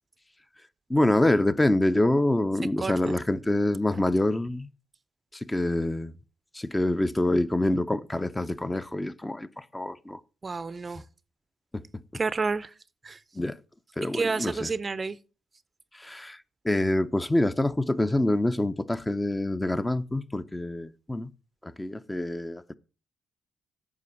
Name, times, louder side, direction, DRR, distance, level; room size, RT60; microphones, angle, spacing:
voice 1, 0.9-4.7 5.3-6.1 6.5-10.2 11.7-12.0 13.3-13.6 14.0-14.7 15.9-21.3 21.6-22.8, left 1 dB, 15° left, 0.6 m, -26 dB
voice 2, 10.4-11.0 12.1-12.7 13.0-13.2 14.1-15.2, right 4 dB, 35° right, 0.5 m, -29 dB
9.6 x 6.2 x 5.6 m
supercardioid pair, 55°, 0 cm